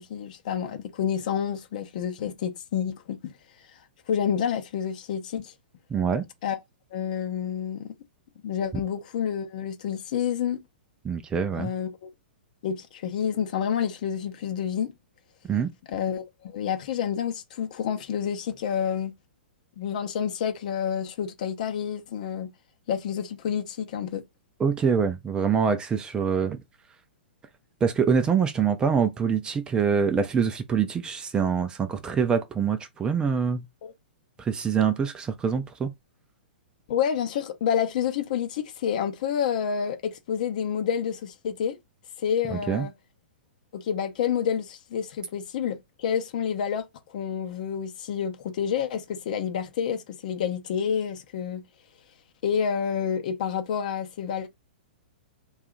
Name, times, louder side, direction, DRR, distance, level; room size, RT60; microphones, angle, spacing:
voice 1, 0.0-3.3 4.1-5.5 6.4-6.6 6.9-7.9 8.4-10.6 11.6-12.1 12.6-14.9 15.9-19.1 19.8-22.5 22.9-24.2 33.8-33.9 36.9-41.8 42.2-42.9 43.7-46.8 47.1-51.6 52.4-54.5, left 8 dB, 50° left, 0.7 m, -29 dB
voice 2, 5.9-6.2 11.0-11.7 15.4-15.7 24.6-26.6 27.8-33.6 34.4-35.9 42.5-42.9, right 6 dB, 15° right, 0.4 m, -25 dB
2.7 x 2.4 x 3.7 m
figure-of-eight pair, 110°, 6 cm